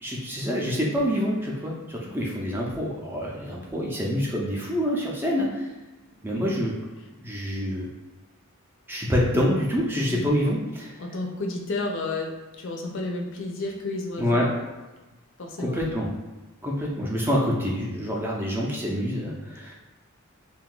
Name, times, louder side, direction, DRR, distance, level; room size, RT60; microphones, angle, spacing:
voice 1, 0.0-5.7 6.2-6.7 7.2-7.9 8.9-10.9 14.2-14.5 15.6-16.1 16.6-19.7, equal, 10° right, -3 dB, 0.5 m, -26 dB
voice 2, 11.0-12.3 12.6-14.5 15.4-15.8, left 2 dB, 60° left, 1 dB, 0.5 m, -31 dB
2.7 x 2.3 x 3.7 m, 1.2 s
head